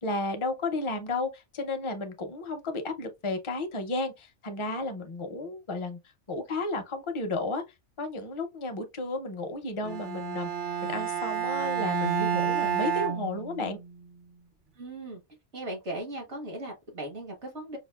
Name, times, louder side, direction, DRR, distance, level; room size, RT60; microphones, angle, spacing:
voice 1, 0.0-6.0 6.3-7.6 8.0-10.5 10.8-13.8, left 2 dB, 35° left, 0.5 m, -33 dB
Bowed string instrument, 9.8-13.9, right 8 dB, 55° right, 0.7 m, -30 dB
voice 2, 14.7-15.2 15.5-17.8, right 1 dB, 75° right, 1.7 m, -38 dB
5.0 x 2.3 x 2.3 m
omnidirectional pair, 1.2 m